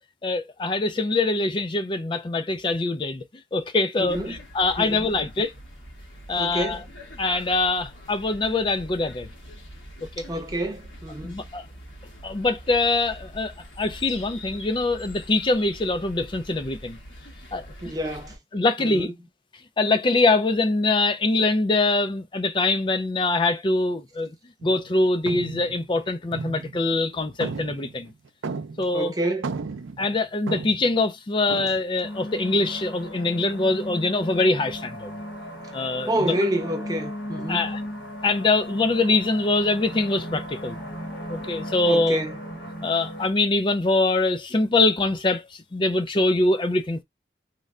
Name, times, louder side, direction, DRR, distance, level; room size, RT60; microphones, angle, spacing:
voice 1, 0.2-3.2 3.5-5.5 6.3-6.8 7.2-9.3 11.2-11.6 12.2-17.0 17.5-17.9 18.5-19.1 19.8-24.3 24.6-28.1 28.8-29.1 30.0-35.1 35.7-36.3 37.5-37.8 38.2-40.8 41.3-42.2 42.8-47.0, left 2 dB, 25° left, 0.4 m, -23 dB
voice 2, 4.0-4.4 4.8-5.1 6.4-6.9 10.2-11.5 17.8-18.4 18.8-19.2 28.9-29.5 36.1-37.7 41.9-42.3, right 1 dB, 20° right, 0.7 m, -28 dB
sound 1, 4.1-18.4, equal, 85° left, 1.2 m, -43 dB
sound 2, 24.6-24.9 25.3-27.0 27.4-29.0 29.3-31.0 31.5-31.8, right 4 dB, 90° right, 0.4 m, -34 dB
sound 3, 32.0-43.3, equal, 70° left, 1.3 m, -36 dB
3.2 x 2.2 x 3.6 m
head